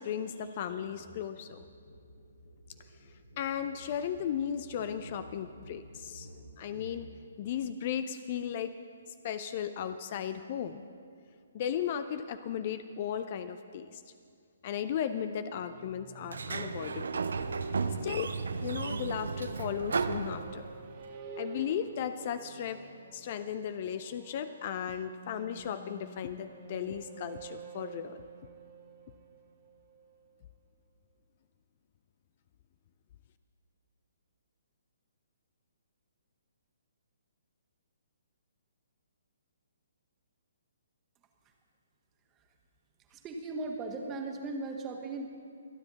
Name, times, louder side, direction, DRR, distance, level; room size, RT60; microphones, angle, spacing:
voice 1, 0.0-1.6 3.4-6.3 6.6-7.1 7.4-8.7 9.2-10.8 11.5-14.0 14.6-17.2 18.0-18.3 18.6-20.7 21.4-22.8 23.1-28.2, left 9 dB, 40° left, 11 dB, 0.5 m, -35 dB
sound 1, 0.9-1.1 1.4-7.0, equal, 80° left, 4.7 m, -52 dB
sound 2, 15.5-30.2, right 3 dB, 35° right, 1.9 m, -47 dB
Sliding door, 16.2-21.0, right 5 dB, 65° right, 0.6 m, -34 dB
voice 2, 43.0-45.3, right 3 dB, 20° right, 2 dB, 1.5 m, -38 dB
25.5 x 9.8 x 4.1 m, 2.2 s
figure-of-eight pair, 130°, 0 cm